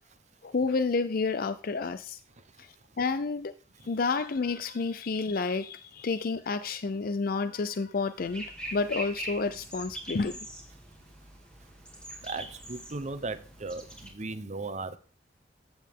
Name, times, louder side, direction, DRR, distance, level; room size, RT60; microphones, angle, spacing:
voice 1, 0.4-2.2 2.6-3.5 3.8-10.4, left 4 dB, 55° left, 0.5 m, -30 dB
sound 1, 8.2-14.1, right 1 dB, 5° left, 2.5 m, -42 dB
voice 2, 12.2-15.0, right 3 dB, 40° right, 0.9 m, -37 dB
14.0 x 8.8 x 3.6 m
head